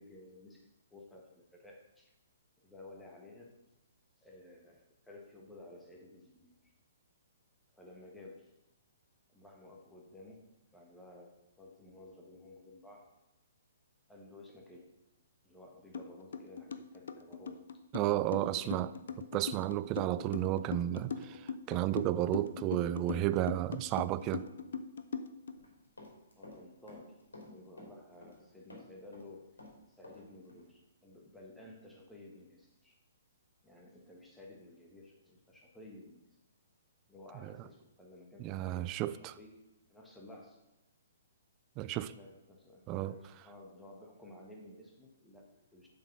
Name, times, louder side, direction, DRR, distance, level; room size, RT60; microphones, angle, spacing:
voice 1, 0.0-2.1 2.6-3.6 4.2-6.7 7.7-8.5 9.3-13.1 14.1-15.0 15.4-17.6 18.3-18.9 26.4-27.2 27.5-29.5 29.9-33.0 33.6-36.2 37.1-40.6 41.8-45.9, left 2 dB, 5° left, 1.4 m, -54 dB
sound 1, 15.9-16.1 16.3-25.5, left 6 dB, 60° left, 0.6 m, -40 dB
voice 2, 17.9-18.9 19.3-24.4 38.4-39.4 41.8-42.1 42.9-43.1, right 14 dB, 25° right, 0.4 m, -32 dB
Run, 25.5-26.6 26.9-28.4 28.7-30.2 30.5-30.6, left 2 dB, 75° left, 2.6 m, -52 dB
7.5 x 5.0 x 5.9 m
figure-of-eight pair, 125°, 0 cm